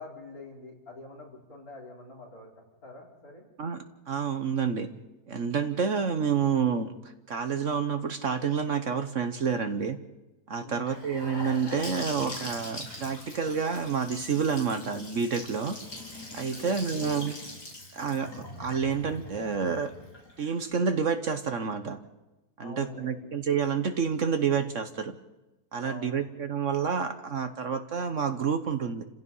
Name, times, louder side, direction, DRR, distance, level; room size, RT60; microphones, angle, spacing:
voice 1, 0.0-2.5 2.8-3.5 10.6-11.0 16.5-17.3 22.6-23.3 25.8-26.3, left 2 dB, 60° left, -2 dB, 5.4 m, -45 dB
voice 2, 3.6-4.9 5.3-6.9 7.3-10.0 10.5-15.8 16.3-17.3 17.9-19.9 20.4-22.0 22.6-25.1 25.7-29.0, right 6 dB, 50° right, 8 dB, 1.3 m, -29 dB
Gurgling / Sink (filling or washing) / Bathtub (filling or washing), 10.9-20.7, left 2 dB, 75° left, 4.9 m, -42 dB
30.0 x 16.0 x 5.6 m, 1.1 s
omnidirectional pair, 1.7 m